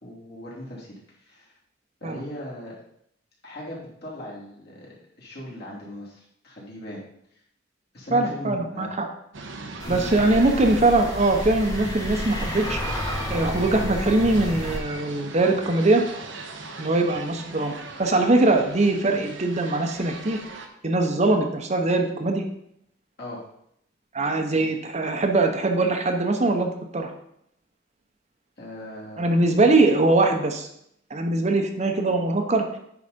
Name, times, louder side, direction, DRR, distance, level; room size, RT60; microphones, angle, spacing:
voice 1, 0.0-1.5 2.0-2.7 3.4-7.0 7.3-7.4 7.9-8.9 9.7-10.7 23.2-23.4 24.4-24.7 28.6-29.4, left 1 dB, 60° left, -5 dB, 3.0 m, -39 dB
voice 2, 8.1-9.1 9.9-12.8 13.3-16.0 16.8-17.7 18.0-20.4 20.8-22.5 24.1-27.1 29.2-30.7 31.1-32.6, right 2 dB, 40° right, 4 dB, 0.8 m, -22 dB
sound 1, 9.3-20.7, right 3 dB, 90° right, 1.0 m, -39 dB
sound 2, 9.8-14.8, left 1 dB, 20° left, 1.1 m, -31 dB
9.6 x 4.0 x 5.2 m, 0.73 s
head